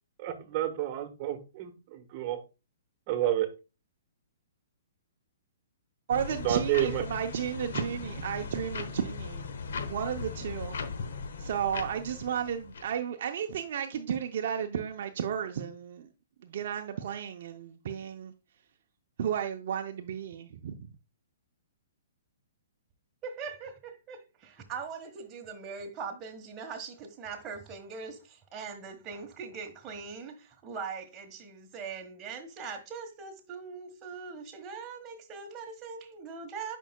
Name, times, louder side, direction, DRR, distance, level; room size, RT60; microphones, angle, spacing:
voice 1, 0.2-2.4 3.1-3.5 6.4-7.0, right 12 dB, 40° right, 1.2 m, -30 dB
sound 1, 6.1-12.9, left 5 dB, 70° left, 0.9 m, -38 dB
voice 2, 6.1-9.5 9.9-10.8 11.4-16.1 16.4-18.3 19.2-20.9, right 8 dB, 60° right, 0.6 m, -33 dB
voice 3, 23.2-36.8, right 5 dB, 20° right, 1.3 m, -41 dB
8.9 x 5.4 x 2.2 m
hypercardioid pair, 145°, 0 cm